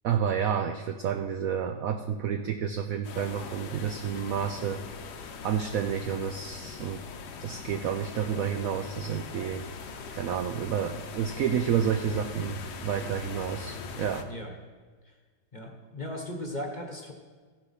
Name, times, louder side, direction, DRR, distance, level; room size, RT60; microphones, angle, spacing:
voice 1, 0.0-4.8 5.4-7.0 7.4-9.7 10.1-14.3, right 8 dB, 80° right, 6 dB, 0.7 m, -30 dB
sound 1, 3.0-14.2, left 5 dB, 65° left, 1.3 m, -41 dB
voice 2, 15.5-17.1, left 1 dB, 30° left, 2 dB, 1.0 m, -37 dB
14.5 x 7.0 x 5.7 m, 1.5 s
omnidirectional pair, 2.1 m